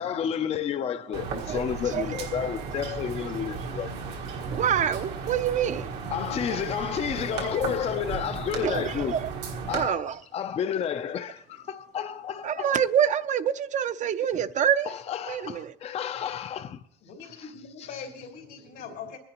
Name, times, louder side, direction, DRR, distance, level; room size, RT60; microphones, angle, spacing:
voice 1, 0.0-3.9 6.1-9.2 9.7-12.7 14.9-16.8 17.2-17.5 17.8-17.9, left 8 dB, 40° left, 0.4 m, -31 dB
sound 1, 1.1-9.9, right 4 dB, 85° right, 1.5 m, -35 dB
voice 2, 1.4-2.6 3.6-3.7 4.5-5.9 6.5-6.6 8.6-9.3 9.7-10.2 12.4-14.9 15.3-15.7, right 9 dB, 45° right, 0.5 m, -27 dB
voice 3, 17.0-19.2, left 6 dB, 90° left, 2.9 m, -41 dB
26.0 x 10.0 x 2.9 m
cardioid pair, 110°, 17 cm